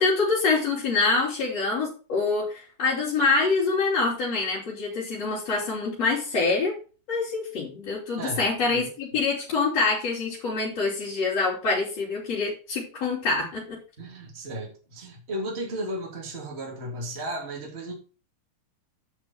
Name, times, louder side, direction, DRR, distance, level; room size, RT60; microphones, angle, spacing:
voice 1, 0.0-6.8 7.1-13.8, left 3 dB, 55° left, -8 dB, 4.9 m, -25 dB
voice 2, 8.1-8.8 14.0-17.9, right 1 dB, 20° right, -1 dB, 3.1 m, -34 dB
9.7 x 6.0 x 6.1 m, 0.35 s
omnidirectional pair, 3.6 m